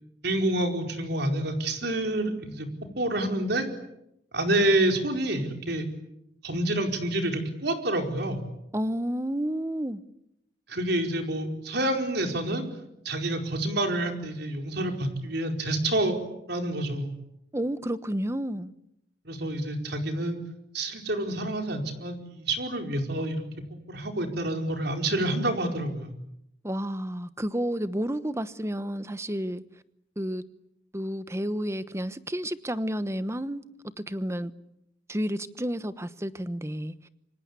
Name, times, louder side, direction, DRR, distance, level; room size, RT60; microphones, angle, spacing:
voice 1, 0.2-2.7 3.0-3.6 4.3-5.9 6.4-8.4 10.7-12.6 13.0-16.2 16.5-17.1 19.2-20.4 20.7-23.4 23.9-26.1, right 1 dB, 60° right, 4 dB, 4.7 m, -28 dB
voice 2, 8.7-10.0 17.5-18.7 26.6-29.6 30.2-30.4 30.9-33.6 34.1-34.5 35.1-37.1, equal, 15° right, 13 dB, 1.1 m, -31 dB
28.0 x 25.5 x 8.4 m, 0.81 s
head